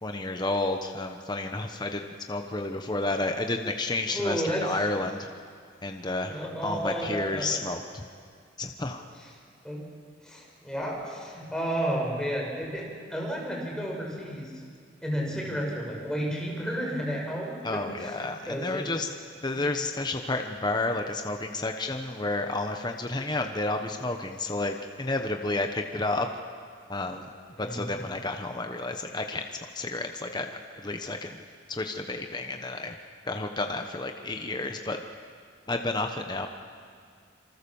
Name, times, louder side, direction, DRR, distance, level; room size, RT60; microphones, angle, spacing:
voice 1, 0.0-5.3 5.8-8.0 8.6-9.0 17.6-19.1 19.4-26.3 26.9-27.3 27.6-29.4 29.7-31.4 31.7-33.0 33.3-35.0 35.7-36.5, left 2 dB, 20° left, 4 dB, 1.2 m, -31 dB
voice 2, 4.1-4.8 6.3-7.5 9.6-9.9 10.2-14.5 15.0-18.8 27.6-28.0, equal, 5° left, -2 dB, 5.9 m, -32 dB
27.0 x 24.0 x 7.2 m, 2.2 s
head